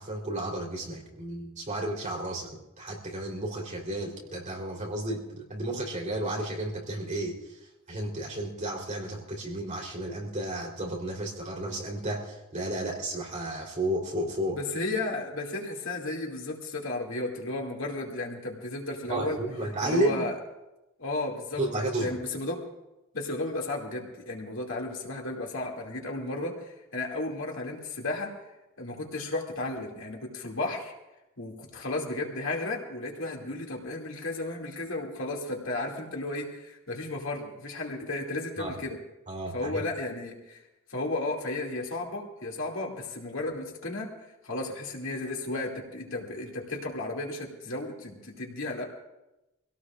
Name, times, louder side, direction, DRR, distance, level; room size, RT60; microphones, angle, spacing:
voice 1, 0.0-2.5 2.8-7.4 7.9-14.6 19.1-20.2 21.6-22.2 38.6-38.7 39.3-39.7, right 1 dB, 40° right, -2 dB, 3.7 m, -32 dB
voice 2, 14.5-19.4 19.8-20.3 21.0-21.6 22.0-22.6 23.1-28.3 28.8-30.9 31.4-39.0 39.5-40.6 40.9-44.1 44.4-48.8, left 2 dB, 70° left, 0 dB, 2.5 m, -34 dB
25.0 x 17.0 x 2.5 m, 0.96 s
head